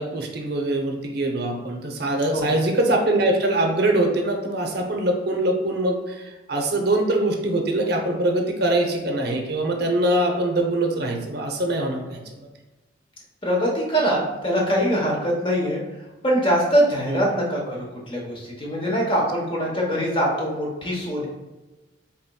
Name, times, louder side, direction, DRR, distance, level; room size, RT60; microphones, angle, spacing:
voice 1, 0.0-12.5 17.1-17.2, right 1 dB, 50° right, 2 dB, 0.6 m, -23 dB
voice 2, 13.4-15.8 16.2-21.3, equal, 25° left, -3 dB, 0.9 m, -23 dB
4.1 x 3.9 x 2.2 m, 1.1 s
head